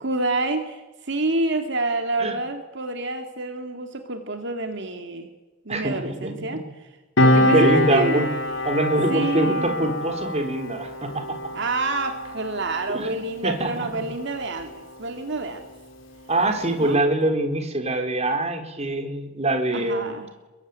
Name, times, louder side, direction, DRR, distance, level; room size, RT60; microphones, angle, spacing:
voice 1, 0.0-5.3 5.7-6.9 7.2-8.2 9.1-10.0 11.5-14.7 15.0-15.7 16.8-17.0 19.7-20.3, right 2 dB, 60° right, 6 dB, 2.4 m, -27 dB
voice 2, 5.7-6.6 7.3-8.3 8.6-11.4 12.9-14.0 16.3-20.2, right 1 dB, 35° right, 5 dB, 4.0 m, -24 dB
Piano, 7.2-14.2 14.5-14.7, left 1 dB, 75° left, 3.6 m, -24 dB
27.0 x 23.0 x 9.6 m, 1.2 s
head